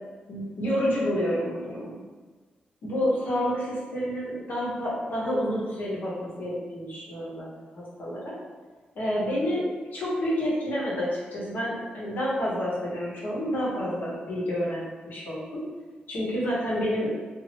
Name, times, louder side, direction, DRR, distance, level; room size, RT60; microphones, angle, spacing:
voice 1, 0.3-2.0 2.8-7.5 7.7-8.3 8.9-15.5 16.1-17.1, equal, 70° left, -6 dB, 1.0 m, -29 dB
2.9 x 2.6 x 2.8 m, 1.4 s
cardioid pair, 85°, 3 cm